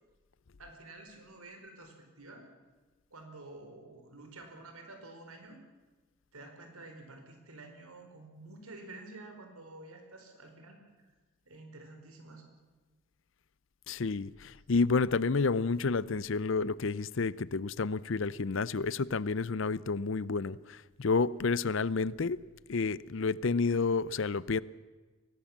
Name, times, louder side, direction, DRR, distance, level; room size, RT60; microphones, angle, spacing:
voice 1, 0.6-2.5 3.1-5.6 6.3-10.8 11.4-12.5, right 2 dB, 85° right, 4.8 m, -50 dB
voice 2, 13.9-22.4 22.7-24.6, left 4 dB, 60° left, 0.6 m, -30 dB
23.5 x 18.5 x 7.3 m
head